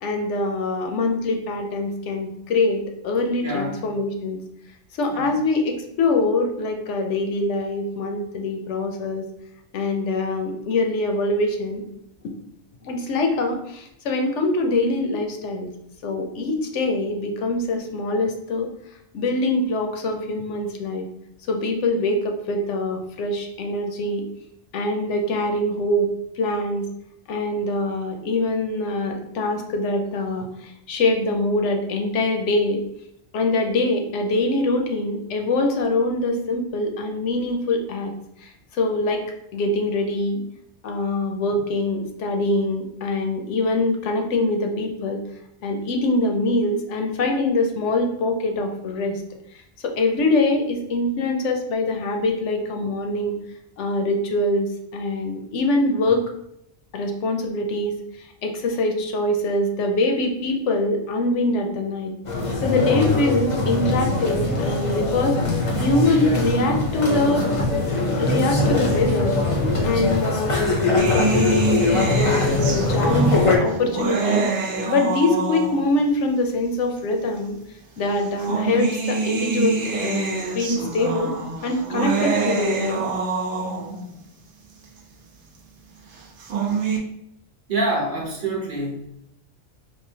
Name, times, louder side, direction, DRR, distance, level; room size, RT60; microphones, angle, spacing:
voice 1, 0.0-4.4 5.0-9.3 9.7-11.8 12.8-15.7 16.0-18.7 19.1-21.0 21.5-24.2 24.7-26.1 26.4-26.9 27.3-32.8 33.3-38.1 38.4-39.2 39.5-40.4 40.8-45.2 45.6-49.2 49.8-53.4 53.8-56.2 56.9-58.0 58.4-62.1 62.6-65.5 65.8-67.5 68.2-69.4 69.8-77.6 78.0-81.3 81.6-83.0, left 2 dB, 75° left, 3 dB, 0.9 m, -23 dB
voice 2, 3.4-3.8 5.1-5.4 87.7-89.3, right 1 dB, 50° right, -2 dB, 0.8 m, -27 dB
sound 1, 62.2-73.6, left 2 dB, 40° left, 0.5 m, -22 dB
sound 2, 71.0-76.1 77.0-77.1 78.2-84.1 86.2-87.0, right 4 dB, 80° right, 1.0 m, -26 dB
4.7 x 2.2 x 2.7 m, 0.76 s
omnidirectional pair, 1.2 m